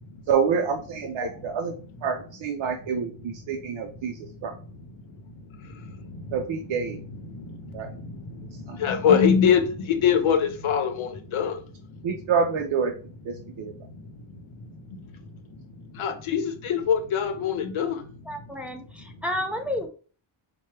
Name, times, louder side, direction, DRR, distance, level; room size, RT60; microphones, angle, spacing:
voice 1, 0.3-1.7 2.0-4.5 6.3-7.0 7.7-7.9 8.7-8.8 9.0-9.2 12.0-12.9 13.3-13.7, right 6 dB, 65° right, 3 dB, 0.6 m, -27 dB
voice 2, 1.2-1.5 3.6-12.1 13.3-18.7 19.1-19.2, left 7 dB, 70° left, 5 dB, 0.8 m, -27 dB
voice 3, 18.3-19.9, left 1 dB, 5° right, 2 dB, 0.4 m, -31 dB
4.5 x 2.2 x 3.2 m, 0.39 s
wide cardioid pair, 140°, 50 cm